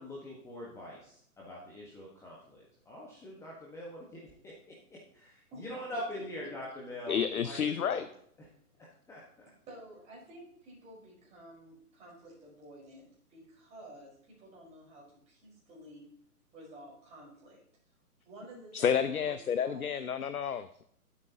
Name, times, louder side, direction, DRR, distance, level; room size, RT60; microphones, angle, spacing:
voice 1, 0.0-4.7 5.1-7.2 7.4-8.1 8.4-8.5 9.1-9.5, left 1 dB, 5° left, -5 dB, 1.4 m, -43 dB
voice 2, 7.1-8.1 18.7-20.8, left 7 dB, 65° left, 11 dB, 0.8 m, -30 dB
voice 3, 9.7-16.1 16.5-17.6 18.2-20.0, right 1 dB, 15° right, -5 dB, 4.8 m, -51 dB
20.0 x 8.3 x 2.9 m, 0.67 s
figure-of-eight pair, 135°, 46 cm